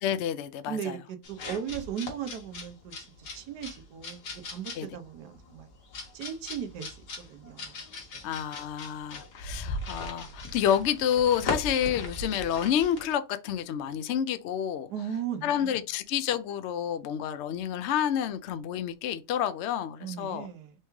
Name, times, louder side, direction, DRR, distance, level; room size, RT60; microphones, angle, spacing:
voice 1, 0.0-1.0 4.8-4.9 8.2-14.9 15.4-20.5, left 9 dB, 70° left, 0.6 m, -29 dB
voice 2, 0.7-5.7 6.1-7.7 8.1-8.2 14.9-15.8 20.0-20.7, right 8 dB, 85° right, 1.3 m, -37 dB
sound 1, 1.2-13.1, left 2 dB, 85° left, 1.9 m, -39 dB
4.5 x 3.4 x 3.0 m
omnidirectional pair, 1.7 m